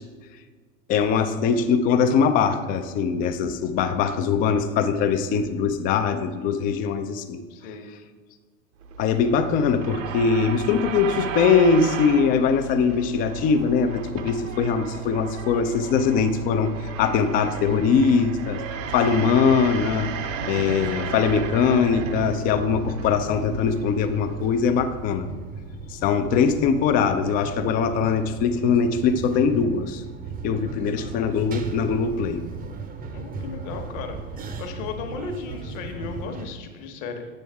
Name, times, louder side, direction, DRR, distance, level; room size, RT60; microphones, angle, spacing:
voice 1, 0.9-7.4 9.0-18.6 18.9-20.1 20.5-25.3 25.9-30.0 30.4-32.5, left 6 dB, 20° left, 10 dB, 0.3 m, -22 dB
voice 2, 6.4-6.8 7.5-7.9 33.1-34.2 34.6-37.3, left 5 dB, 40° left, 5 dB, 1.2 m, -35 dB
sound 1, 8.8-25.2, right 4 dB, 60° right, 0.8 m, -34 dB
sound 2, 18.8-36.5, right 4 dB, 20° right, 0.6 m, -37 dB
8.3 x 6.4 x 3.4 m, 1.4 s
figure-of-eight pair, 80°, 44 cm